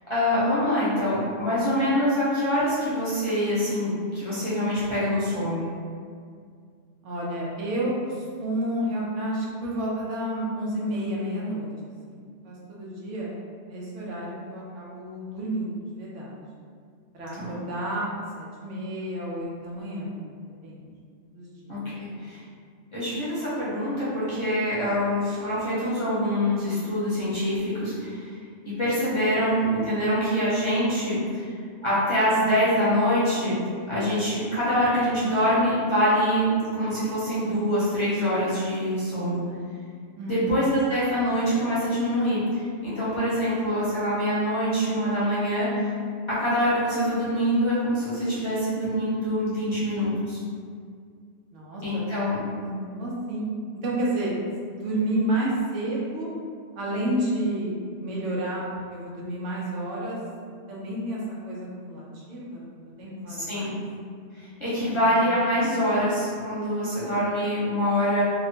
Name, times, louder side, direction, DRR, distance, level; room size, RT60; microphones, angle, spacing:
voice 1, 0.1-5.6 17.4-17.6 21.7-22.4 22.9-28.3 28.6-31.5 31.8-33.5 33.9-36.5 36.7-39.4 40.3-45.9 46.3-50.4 51.8-52.4 63.5-63.7 64.4-68.2, equal, 30° left, -11 dB, 0.6 m, -25 dB
voice 2, 7.0-11.7 12.1-13.4 13.7-16.4 17.1-18.1 18.3-20.2 20.6-20.9 21.3-22.2 40.2-40.5 51.5-52.0 52.6-53.5 53.8-54.4 54.7-56.3 56.7-57.7 58.0-58.6 58.9-60.2 60.7-63.8 64.8-65.5, right 1 dB, 90° right, -5 dB, 1.0 m, -31 dB
2.9 x 2.1 x 2.7 m, 2.2 s
omnidirectional pair, 1.2 m